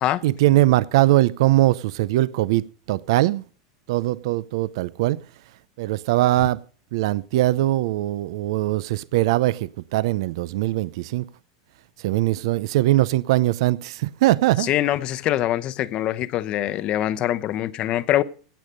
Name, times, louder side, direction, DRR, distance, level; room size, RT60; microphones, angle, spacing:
voice 1, 0.2-3.4 3.9-5.2 5.8-6.6 6.9-11.3 12.0-14.7, right 16 dB, 70° right, 0.6 m, -21 dB
voice 2, 14.6-18.2, left 13 dB, 40° left, 0.8 m, -24 dB
16.5 x 8.9 x 5.2 m
supercardioid pair, 130°, 3 cm